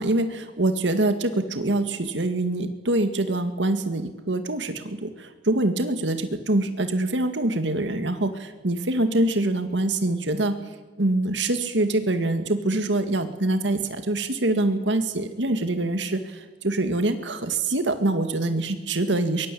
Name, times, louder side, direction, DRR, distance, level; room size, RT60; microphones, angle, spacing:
voice 1, 0.0-10.6 11.0-19.5, right 2 dB, 75° right, 8 dB, 2.1 m, -25 dB
23.0 x 22.0 x 8.6 m, 1.3 s
head